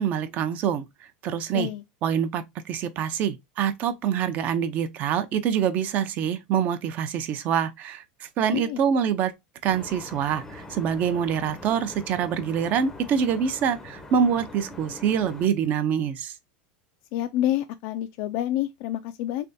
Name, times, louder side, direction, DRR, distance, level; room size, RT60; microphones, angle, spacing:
voice 1, 0.0-1.7 2.0-9.3 9.6-16.4, right 8 dB, 40° right, 0.5 m, -25 dB
voice 2, 1.5-1.8 8.5-8.8 17.1-19.5, left 12 dB, 55° left, 0.3 m, -28 dB
sound 1, 9.7-15.5, left 2 dB, 10° left, 0.6 m, -43 dB
3.4 x 3.3 x 2.7 m
supercardioid pair, 150°, 4 cm